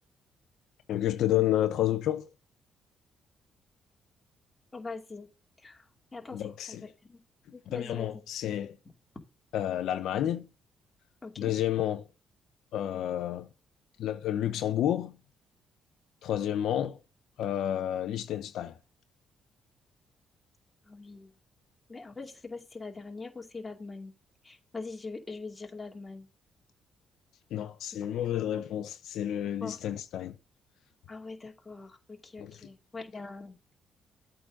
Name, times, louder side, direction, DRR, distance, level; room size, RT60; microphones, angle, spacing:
voice 1, 0.9-2.3 6.3-6.9 7.7-8.8 9.5-10.5 11.4-12.1 12.7-13.5 14.0-15.2 16.2-17.0 17.4-18.8 27.5-30.4 32.4-32.7, left 11 dB, 80° left, 0.7 m, -30 dB
voice 2, 4.7-5.3 5.6-5.9 6.1-6.8 7.1-7.2 7.5-8.2 11.2-11.5 20.9-21.3 21.9-24.1 24.4-26.3 29.6-29.8 31.1-33.5, left 3 dB, 20° left, 2.4 m, -42 dB
8.5 x 3.9 x 6.5 m
cardioid pair, 90°, 0 cm